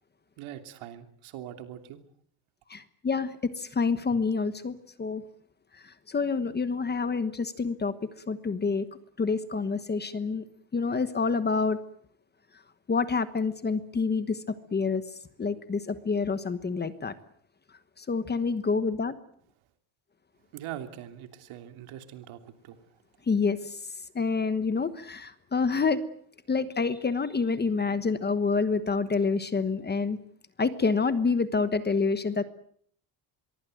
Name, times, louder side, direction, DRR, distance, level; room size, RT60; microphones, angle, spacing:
voice 1, 0.4-2.0 20.5-22.8, right 11 dB, 80° right, 7 dB, 3.2 m, -42 dB
voice 2, 2.7-3.3 3.6-5.2 6.1-7.9 8.3-8.8 9.2-10.4 10.7-11.8 12.9-14.4 14.7-15.0 15.4-17.1 18.0-19.1 23.3-23.6 24.1-26.0 26.5-30.2 30.6-32.4, left 4 dB, 20° left, 12 dB, 1.2 m, -27 dB
25.0 x 22.5 x 7.8 m, 0.63 s
cardioid pair, 165°, 48 cm